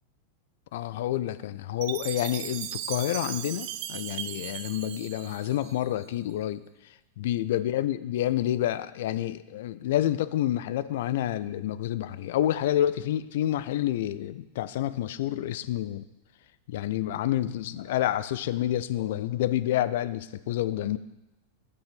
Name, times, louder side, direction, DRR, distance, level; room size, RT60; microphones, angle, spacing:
voice 1, 0.7-6.6 7.2-16.0 16.7-21.0, left 12 dB, 55° left, 15 dB, 0.3 m, -28 dB
Chime, 1.8-6.1, right 11 dB, 45° right, 0.4 m, -37 dB
6.7 x 5.2 x 5.1 m, 0.99 s
figure-of-eight pair, 90°, 0 cm